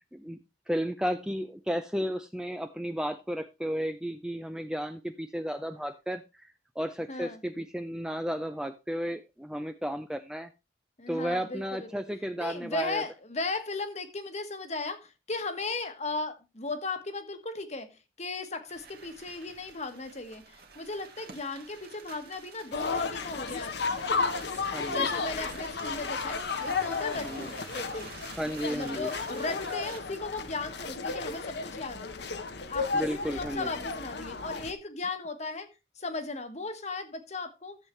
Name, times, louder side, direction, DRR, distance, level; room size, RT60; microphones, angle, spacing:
voice 1, 0.7-10.5 11.1-13.0 24.7-25.1 27.2-27.5 28.3-29.1 32.9-33.7, equal, 5° right, 0.5 m, -33 dB
voice 2, 7.1-7.4 11.0-12.0 12.4-24.0 24.9-28.1 28.7-32.1 32.7-35.7 36.0-37.8, left 3 dB, 35° left, 1.3 m, -36 dB
sound 1, 18.7-30.0, right 5 dB, 55° right, 1.8 m, -50 dB
sound 2, 22.7-34.7, left 4 dB, 60° left, 0.9 m, -33 dB
13.5 x 7.4 x 3.2 m
head